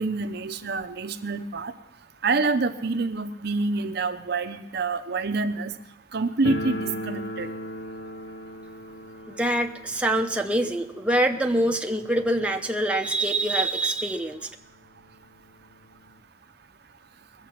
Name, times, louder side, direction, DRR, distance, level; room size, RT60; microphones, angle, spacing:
voice 1, 0.0-1.7 2.2-5.8 6.1-7.5, right 3 dB, 60° right, 8 dB, 0.7 m, -27 dB
sound 1, 6.4-13.2 13.4-13.5 13.8-13.9 14.6-14.7 15.0-16.2, equal, 70° left, 0.8 m, -37 dB
voice 2, 9.4-14.5, right 1 dB, 5° right, 2 dB, 0.7 m, -25 dB
21.0 x 7.4 x 5.9 m, 0.84 s
head